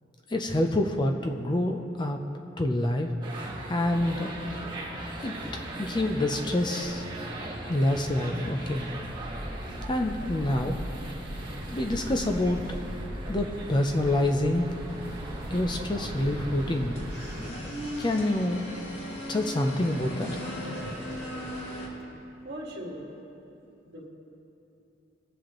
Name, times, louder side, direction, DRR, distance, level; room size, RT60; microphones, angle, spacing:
voice 1, 0.3-2.2 2.6-3.2 3.7-4.3 5.2-5.3 5.8-7.0 7.7-8.9 9.9-10.8 11.7-12.8 13.3-14.8 15.5-17.0 18.0-18.6 19.3-20.3, left 1 dB, 25° left, 3 dB, 0.5 m, -27 dB
sound 1, 3.2-17.5, right 1 dB, 25° right, 1.5 m, -37 dB
sound 2, 14.9-21.9, equal, 85° left, 2.0 m, -38 dB
voice 2, 22.4-23.1 23.8-24.1, equal, 60° right, -2 dB, 1.7 m, -39 dB
20.0 x 7.5 x 3.0 m, 2.8 s
head